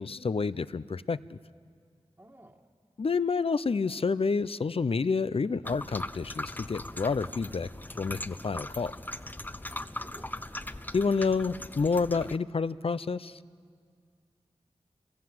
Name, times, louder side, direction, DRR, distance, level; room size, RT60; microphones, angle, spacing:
voice 1, 0.0-1.4 3.0-7.7 8.0-8.9 10.9-13.4, left 4 dB, 60° left, 16 dB, 0.6 m, -29 dB
voice 2, 2.2-2.6 9.7-10.3, right 1 dB, 20° right, -2 dB, 1.7 m, -53 dB
sound 1, 5.6-12.4, left 1 dB, 15° left, 0.6 m, -40 dB
28.5 x 21.0 x 7.8 m, 2.1 s
wide cardioid pair, 55°, 11 cm